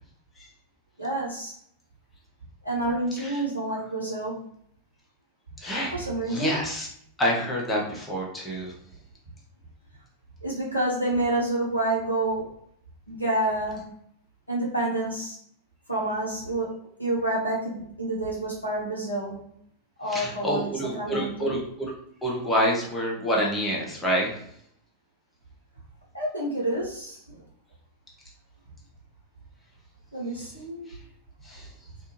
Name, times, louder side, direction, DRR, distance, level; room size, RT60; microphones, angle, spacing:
voice 1, 1.0-1.5 2.6-4.4 5.9-6.6 10.4-12.5 13.1-13.8 14.5-15.4 15.9-16.7 17.0-19.4 20.0-21.6 26.1-27.4 30.1-30.9, right 1 dB, 90° left, -5 dB, 1.0 m, -28 dB
voice 2, 5.6-5.9 6.3-6.9 7.2-8.7 20.1-21.9 22.2-24.3 31.5-31.7, equal, 10° left, -3 dB, 0.8 m, -27 dB
2.5 x 2.3 x 3.0 m, 0.68 s
figure-of-eight pair, 90°, 0 cm